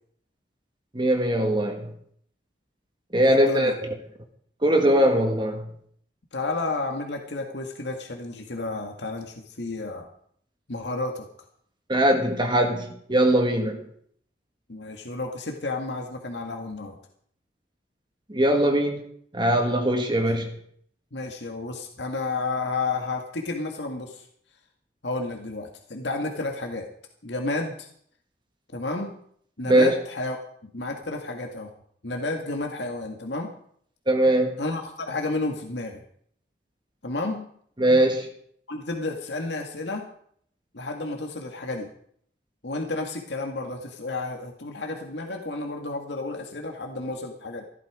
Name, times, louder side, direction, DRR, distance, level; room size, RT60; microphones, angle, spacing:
voice 1, 0.9-1.9 3.1-3.9 4.6-5.7 11.9-13.8 18.3-19.0 19.3-20.6 29.7-29.9 34.1-34.6 37.8-38.3, right 1 dB, 25° right, 3 dB, 1.6 m, -21 dB
voice 2, 3.2-3.7 6.3-10.1 10.7-11.3 14.7-16.9 21.1-24.3 25.0-26.9 27.2-27.9 28.7-29.1 29.6-30.4 30.7-31.7 32.0-33.5 34.6-36.0 37.0-37.5 37.9-38.0 38.7-40.1 40.7-41.9 42.6-47.6, left 2 dB, 90° left, 2 dB, 2.0 m, -31 dB
15.5 x 12.0 x 5.0 m, 0.63 s
head